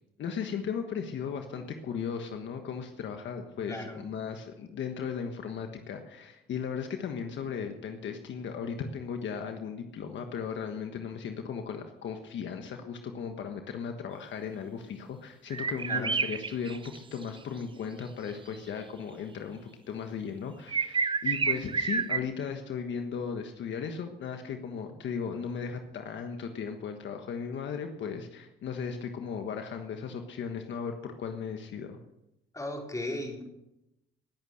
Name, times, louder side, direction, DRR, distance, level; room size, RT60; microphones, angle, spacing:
voice 1, 0.2-32.0, left 6 dB, 70° left, 5 dB, 1.5 m, -36 dB
voice 2, 3.7-4.0 15.8-16.1 32.5-33.4, left 1 dB, 15° left, 0 dB, 4.7 m, -36 dB
sound 1, 15.5-17.2 18.5-18.6 20.7-22.2, right 5 dB, 25° right, 0.7 m, -29 dB
19.5 x 8.6 x 6.6 m, 0.90 s
cardioid pair, 90°, 20 cm